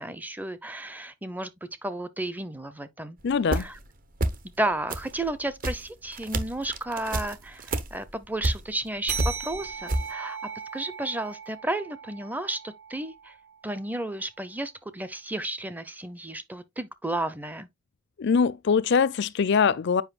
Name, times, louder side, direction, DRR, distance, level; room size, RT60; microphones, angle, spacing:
voice 1, 0.0-3.2 3.6-3.7 4.6-10.4 10.7-13.3 13.6-17.7, right 1 dB, 10° right, 0.5 m, -33 dB
voice 2, 3.2-3.7 18.2-20.0, left 6 dB, 50° left, 0.4 m, -22 dB
sound 1, 3.2-3.9 4.1-4.6 4.9-8.9 9.1-10.1, right 1 dB, 40° right, 0.8 m, -30 dB
sound 2, 9.1-14.0, right 6 dB, 85° right, 2.4 m, -38 dB
7.9 x 5.1 x 2.3 m
head